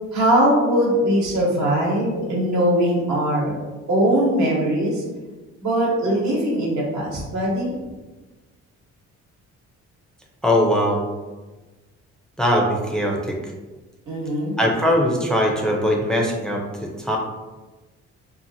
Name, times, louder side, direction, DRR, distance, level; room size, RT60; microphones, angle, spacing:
voice 1, 0.1-3.6 3.9-5.0 5.6-7.7 14.1-14.5, right 1 dB, 65° right, -4 dB, 1.1 m, -21 dB
voice 2, 10.4-11.0 12.4-13.4 14.6-17.2, equal, ahead, 0 dB, 0.4 m, -21 dB
2.7 x 2.4 x 2.6 m, 1.2 s
cardioid pair, 90°, 30 cm